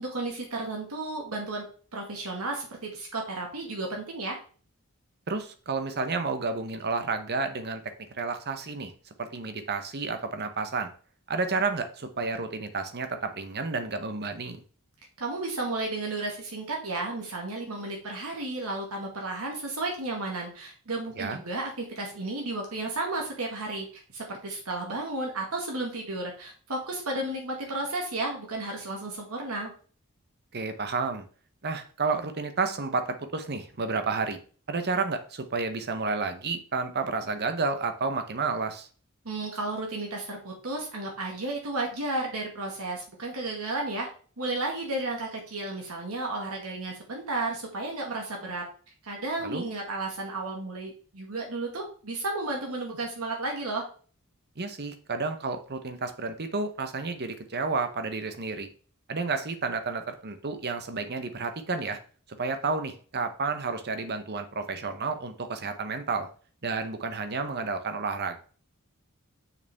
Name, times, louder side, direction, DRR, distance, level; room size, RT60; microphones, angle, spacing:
voice 1, 0.0-1.7 1.9-4.4 15.2-29.7 39.3-44.1 44.4-48.6 49.0-53.8, right 2 dB, 75° right, 0 dB, 1.8 m, -33 dB
voice 2, 5.3-8.9 9.2-10.9 11.3-14.6 21.2-21.4 30.5-31.2 31.6-34.4 34.7-38.9 49.4-49.7 54.6-58.7 59.1-62.0 62.4-66.3 66.6-68.4, right 4 dB, 50° right, 8 dB, 1.0 m, -31 dB
6.8 x 5.8 x 3.5 m, 0.41 s
head